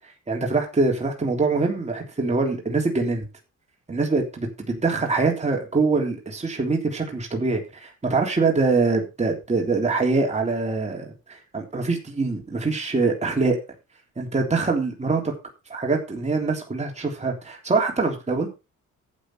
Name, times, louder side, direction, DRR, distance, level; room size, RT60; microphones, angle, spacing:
voice 1, 0.3-3.3 3.9-13.6 14.2-15.3 15.7-18.5, right 3 dB, 20° right, 0 dB, 3.4 m, -24 dB
11.5 x 8.4 x 4.7 m, 0.28 s
cardioid pair, 90°, 30 cm